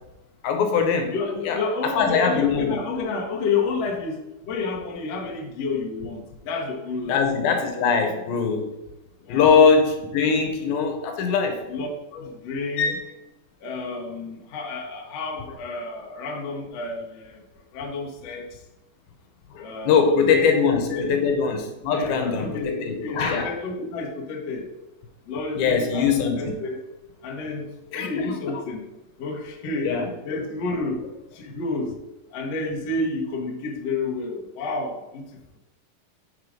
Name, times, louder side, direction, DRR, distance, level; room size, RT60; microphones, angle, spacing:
voice 1, 0.4-1.1 1.4-1.6 2.0-2.7 7.1-8.8 9.3-11.6 12.8-13.0 19.5-23.5 25.6-26.5 27.9-28.6 29.8-30.4, left 5 dB, 80° left, 4 dB, 2.7 m, -22 dB
voice 2, 1.1-7.3 9.2-9.5 11.7-13.0 13.6-17.4 17.7-18.5 19.6-20.4 20.9-21.1 21.9-24.7 25.3-26.8 27.2-28.8 29.2-30.0 30.2-31.0 31.3-31.9 32.3-35.2, left 3 dB, 60° left, -1 dB, 1.9 m, -30 dB
6.6 x 4.7 x 5.1 m, 0.96 s
omnidirectional pair, 4.2 m